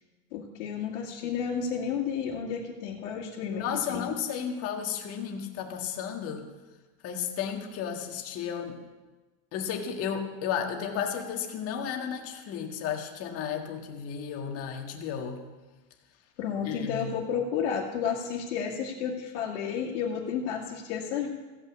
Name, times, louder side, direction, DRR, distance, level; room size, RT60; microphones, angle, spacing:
voice 1, 0.3-4.1 16.4-21.3, left 7 dB, 85° left, -6 dB, 2.2 m, -32 dB
voice 2, 3.5-6.5 7.0-8.8 9.5-15.4 16.7-17.1, left 8 dB, 40° left, 3 dB, 1.8 m, -33 dB
15.5 x 5.6 x 8.3 m, 1.2 s
supercardioid pair, 150°, 35 cm